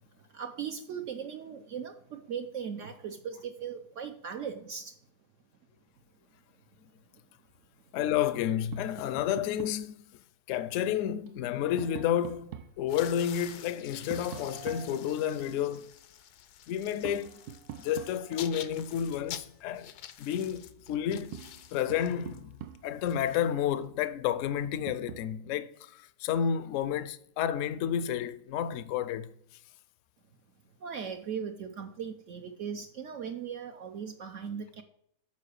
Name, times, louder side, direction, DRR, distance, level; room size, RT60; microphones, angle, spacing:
voice 1, 0.2-5.0 7.1-7.2 30.8-34.8, right 7 dB, 65° right, 0.9 m, -38 dB
voice 2, 7.9-10.0 10.5-15.9 16.7-17.4 17.8-19.9 20.2-21.4 21.7-22.5 22.8-29.3, left 9 dB, 65° left, 0.8 m, -31 dB
Tap, 8.7-9.9 11.3-12.8 14.1-15.5 17.0-18.6 20.4-20.5 20.9-23.1 24.6-25.3, right 10 dB, 80° right, 1.1 m, -45 dB
sound 1, 12.9-23.8, left 10 dB, 90° left, 1.2 m, -48 dB
7.4 x 4.7 x 6.4 m
omnidirectional pair, 1.6 m